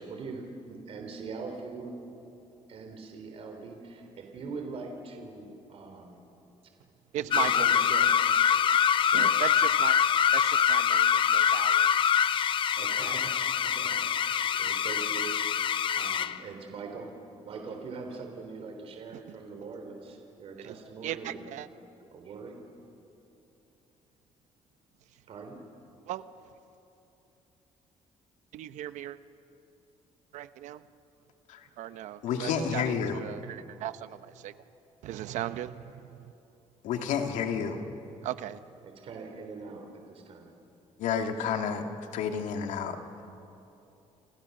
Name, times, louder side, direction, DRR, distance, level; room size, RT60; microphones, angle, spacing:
voice 1, 0.0-2.0 2.7-6.2 7.2-8.1 9.0-9.4 12.8-15.3 16.0-17.1 17.4-21.5 22.1-22.6 25.3-25.6 38.8-40.5, right 4 dB, 55° right, 3 dB, 3.6 m, -42 dB
voice 2, 7.1-7.7 9.1-9.9 10.3-12.1 20.6-20.8 21.0-21.7 26.1-26.2 28.5-29.2 30.3-30.8 31.8-34.5 35.0-36.3 38.2-38.6, right 12 dB, 80° right, 12 dB, 0.9 m, -37 dB
sound 1, 7.3-16.4, left 8 dB, 45° left, 0.7 m, -24 dB
voice 3, 32.2-33.2 36.8-37.8 41.0-41.8 42.1-43.0, left 7 dB, 90° left, 5 dB, 2.3 m, -30 dB
29.0 x 28.0 x 6.6 m, 2.9 s
cardioid pair, 145°, 12 cm